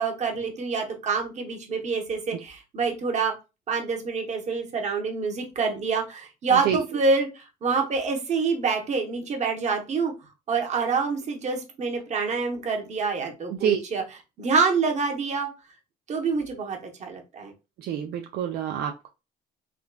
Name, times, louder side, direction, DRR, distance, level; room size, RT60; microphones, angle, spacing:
voice 1, 0.0-3.3 3.7-10.1 10.5-14.0 14.4-15.5 16.1-17.5, right 4 dB, 45° right, 2 dB, 0.9 m, -26 dB
voice 2, 6.5-7.0 13.5-13.8 17.8-19.1, right 9 dB, 70° right, 4 dB, 0.4 m, -27 dB
3.7 x 2.2 x 2.2 m, 0.28 s
cardioid pair, 110°, 17 cm